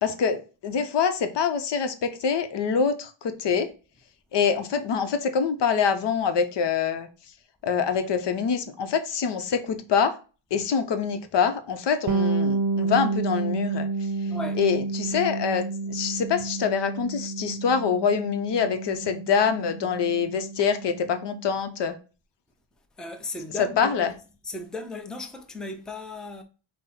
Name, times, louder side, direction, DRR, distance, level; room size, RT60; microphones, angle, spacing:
voice 1, 0.0-3.7 4.3-7.1 7.6-10.2 10.5-13.9 14.6-15.6 15.9-21.9 23.8-24.1, left 6 dB, 65° left, 0.7 m, -25 dB
Bass guitar, 12.1-21.7, right 3 dB, 45° right, 0.7 m, -30 dB
voice 2, 14.3-14.6 23.0-24.1 24.4-26.4, left 2 dB, ahead, 0.5 m, -36 dB
5.3 x 2.1 x 4.1 m
cardioid pair, 95°, 46 cm